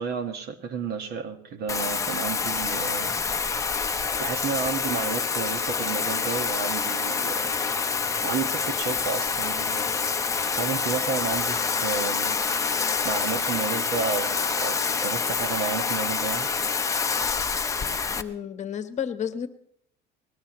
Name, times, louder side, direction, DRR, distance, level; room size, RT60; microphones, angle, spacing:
voice 1, 0.0-3.2 4.2-7.5 8.2-9.9 10.6-12.4 13.0-16.5, right 6 dB, 55° right, 8 dB, 1.7 m, -31 dB
Bathtub (filling or washing), 1.7-18.2, left 5 dB, 15° left, 0.7 m, -27 dB
sound 1, 2.4-17.6, right 1 dB, 15° right, 6.7 m, -57 dB
voice 2, 18.2-19.5, left 8 dB, 35° left, 10 dB, 1.2 m, -31 dB
20.0 x 19.5 x 3.1 m, 0.67 s
cardioid pair, 140°, 20 cm